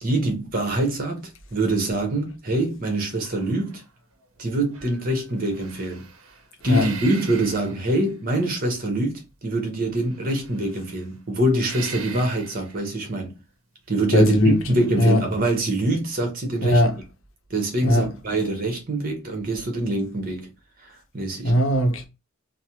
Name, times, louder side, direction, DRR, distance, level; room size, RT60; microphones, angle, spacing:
voice 1, 0.0-3.8 4.4-6.1 6.6-13.4 13.9-16.8 17.5-20.5 20.8-21.5, right 1 dB, 40° right, 0.9 m, -25 dB
sound 1, 3.2-4.4 4.7-8.4 10.0-11.1 11.6-12.9 14.4-15.5, right 5 dB, 80° right, 0.6 m, -42 dB
voice 2, 14.1-14.6 15.0-15.2 16.6-17.0 17.8-18.1 21.4-22.1, equal, 65° left, 0.7 m, -18 dB
3.2 x 2.0 x 2.8 m
head